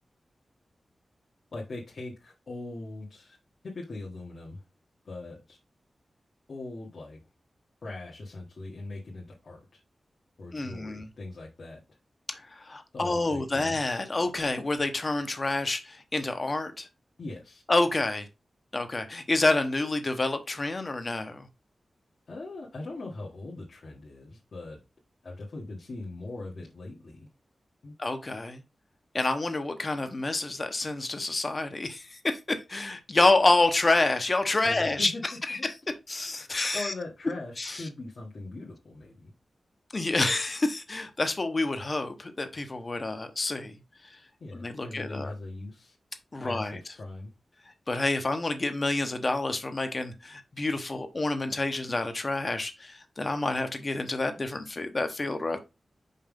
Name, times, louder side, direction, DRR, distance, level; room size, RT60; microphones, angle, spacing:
voice 1, 1.5-3.4 3.6-4.6 5.0-5.6 6.5-7.2 7.8-9.8 10.4-11.8 12.9-13.8 17.2-17.6 22.3-24.8 25.2-27.3 27.8-27.9 34.6-35.2 35.5-35.7 36.7-39.3 44.4-45.9 46.4-46.7 47.0-47.3, left 2 dB, 60° left, 1.5 m, -40 dB
voice 2, 10.5-11.1 12.3-16.9 17.7-18.3 18.7-21.5 28.0-28.6 29.1-35.1 35.5-35.7 36.1-36.9 37.6-37.9 39.9-43.7 44.5-45.3 46.3-46.8 47.9-55.6, left 2 dB, 35° left, 1.0 m, -28 dB
5.5 x 5.0 x 3.7 m
wide cardioid pair, 115°, 0 cm